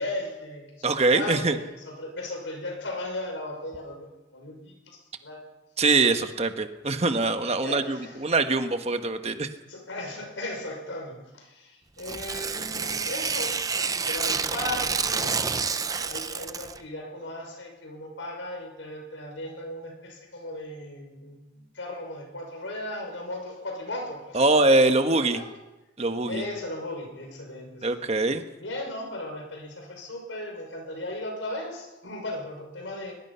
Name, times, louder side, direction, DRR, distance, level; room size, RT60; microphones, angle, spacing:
voice 1, 0.0-5.4 7.6-8.2 9.7-15.6 15.9-24.4 24.8-25.5 26.3-28.0 28.6-33.1, left 1 dB, 80° left, 3 dB, 6.1 m, -37 dB
voice 2, 0.8-1.6 5.8-9.5 24.3-25.4 26.0-26.4 27.8-28.4, right 2 dB, 35° right, 7 dB, 1.3 m, -23 dB
Tearing, 12.0-16.8, right 5 dB, 20° right, 0.6 m, -29 dB
22.0 x 21.0 x 5.7 m, 1.0 s
head